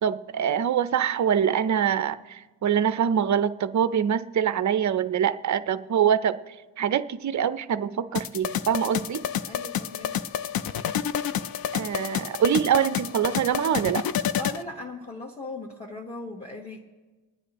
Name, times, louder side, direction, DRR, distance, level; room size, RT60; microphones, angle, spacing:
voice 1, 0.0-9.3 11.7-14.0, right 8 dB, 40° right, 13 dB, 0.5 m, -24 dB
sound 1, 8.1-14.6, left 9 dB, 50° left, 0.5 m, -29 dB
voice 2, 9.4-10.1 14.3-16.8, left 2 dB, 15° left, -1 dB, 1.2 m, -38 dB
29.5 x 10.0 x 3.0 m, 1.3 s
cardioid pair, 125°, 47 cm